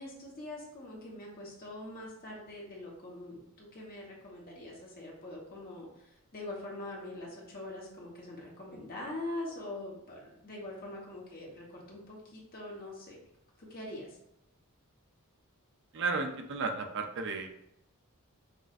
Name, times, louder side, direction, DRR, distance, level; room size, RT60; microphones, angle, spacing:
voice 1, 0.0-13.2 13.6-14.2, left 1 dB, 40° left, -3 dB, 1.1 m, -43 dB
voice 2, 15.9-17.5, right 4 dB, 55° right, 4 dB, 0.4 m, -33 dB
6.0 x 2.5 x 2.5 m, 0.80 s
head